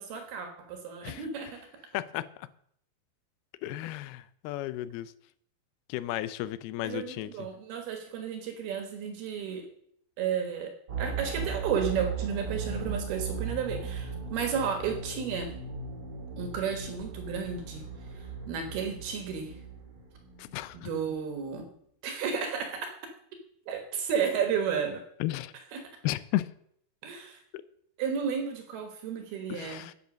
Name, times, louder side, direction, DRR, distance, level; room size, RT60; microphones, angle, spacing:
voice 1, 0.0-1.6 6.8-9.7 10.2-10.7 11.0-15.5 16.4-17.8 18.5-19.5 20.7-21.7 22.0-22.9 23.7-25.0 25.7-25.8 27.0-27.4 28.0-29.9, right 7 dB, 70° right, 3.2 m, -32 dB
voice 2, 1.9-2.5 3.6-5.1 5.9-7.5 20.4-20.9 25.2-25.5 26.0-26.5 27.5-27.6 29.5-29.9, left 15 dB, 80° left, 2.3 m, -34 dB
sound 1, 10.9-20.7, right 4 dB, 45° right, 2.6 m, -37 dB
10.5 x 8.4 x 6.3 m
omnidirectional pair, 4.9 m